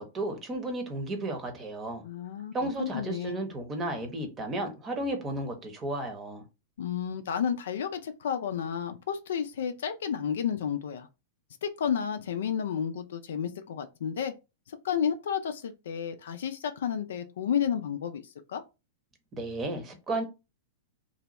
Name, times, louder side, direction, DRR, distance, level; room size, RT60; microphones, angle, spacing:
voice 1, 0.0-2.0 2.5-6.4 19.3-20.2, right 2 dB, 25° right, 0.8 m, -33 dB
voice 2, 2.0-3.4 6.8-11.1 11.6-14.3 14.7-18.2 18.5-18.6, left 8 dB, 65° left, 0.4 m, -31 dB
2.6 x 2.1 x 3.0 m
figure-of-eight pair, 100°, 0 cm